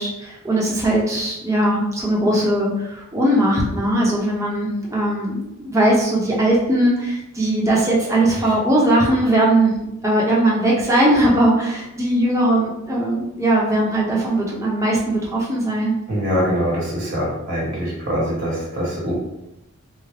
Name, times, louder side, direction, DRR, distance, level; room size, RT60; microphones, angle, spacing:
voice 1, 0.0-9.7 10.0-15.9, right 1 dB, 15° right, -4 dB, 0.7 m, -19 dB
voice 2, 16.1-19.1, equal, 55° right, -5 dB, 1.1 m, -23 dB
3.7 x 2.0 x 3.3 m, 0.90 s
head